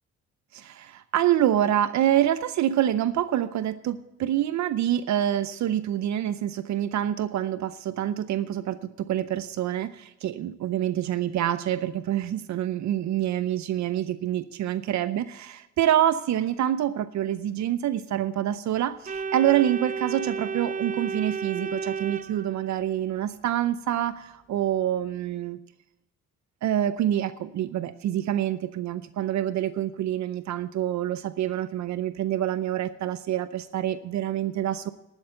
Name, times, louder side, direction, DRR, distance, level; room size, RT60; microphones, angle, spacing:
voice 1, 0.5-25.6 26.6-34.9, right 11 dB, 65° right, 13 dB, 0.6 m, -26 dB
Organ, 19.1-23.0, right 5 dB, 25° right, 0.6 m, -32 dB
11.5 x 7.2 x 7.8 m, 0.96 s
cardioid pair, 90°, 30 cm